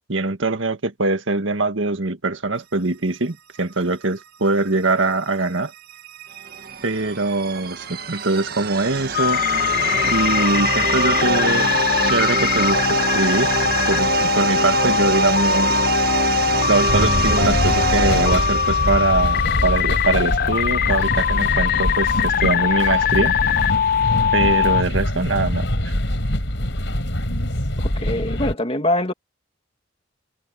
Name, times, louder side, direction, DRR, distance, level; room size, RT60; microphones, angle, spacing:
voice 1, 0.1-5.7 6.8-9.7 10.1-13.5 13.9-15.9 16.5-23.3 24.3-25.9, right 2 dB, 90° right, 1.7 m, -23 dB
sound 1, 5.7-19.6, right 4 dB, 55° right, 1.7 m, -25 dB
sound 2, 9.1-24.8, left 7 dB, 50° left, 0.4 m, -21 dB
sound 3, 16.9-28.6, equal, 70° left, 5.6 m, -24 dB
voice 2, 27.8-29.1, left 1 dB, 30° left, 2.5 m, -23 dB
head